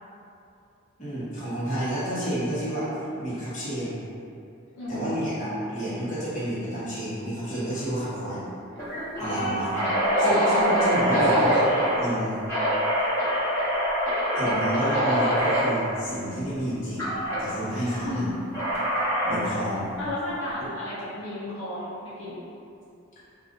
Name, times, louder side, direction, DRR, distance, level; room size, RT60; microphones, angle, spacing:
voice 1, 1.0-4.0 4.9-8.4 9.2-9.8 10.2-11.7 12.0-12.4 14.3-17.1 17.4-18.3 19.2-19.9, equal, 35° left, -11 dB, 1.0 m, -30 dB
voice 2, 4.7-5.4 9.3-9.8 18.0-18.4 19.4-19.6 20.0-22.4, left 1 dB, 75° left, -10 dB, 0.6 m, -34 dB
sound 1, 7.5-7.8 8.1-8.2 8.8-12.0 12.5-15.7 17.0-17.4 18.5-19.5, equal, 15° left, 1.1 m, -24 dB
2.5 x 2.4 x 3.6 m, 2.6 s
head